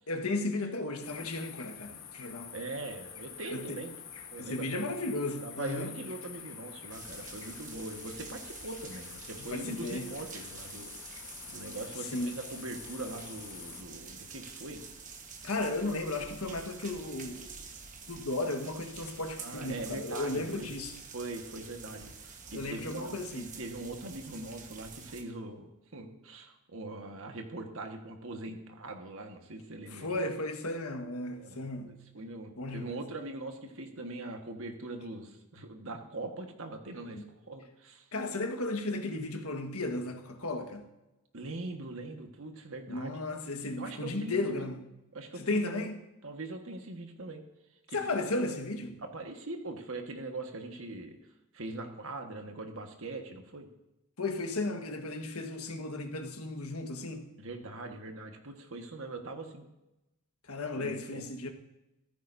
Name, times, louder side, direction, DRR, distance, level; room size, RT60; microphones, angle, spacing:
voice 1, 0.1-2.5 3.5-3.8 4.4-5.9 9.5-10.1 12.1-12.4 15.4-17.5 18.1-20.9 22.5-23.5 29.9-32.0 32.6-33.0 37.1-37.2 38.1-40.8 42.9-44.8 45.4-46.0 47.9-49.0 54.2-57.3 60.5-61.5, left 2 dB, 80° left, 1.5 m, -35 dB
sound 1, 1.0-13.8, left 8 dB, 60° left, 1.4 m, -47 dB
voice 2, 2.5-3.9 4.3-4.9 5.4-10.9 11.5-14.8 19.4-20.7 21.1-30.2 31.3-38.1 41.3-43.2 43.8-44.7 45.1-45.9 46.2-47.4 47.9-48.0 49.0-51.2 51.5-53.7 57.4-59.6 60.8-61.2, right 2 dB, 65° right, 1.5 m, -42 dB
sound 2, 6.9-25.2, right 5 dB, 35° right, 1.3 m, -48 dB
14.5 x 14.0 x 2.7 m
head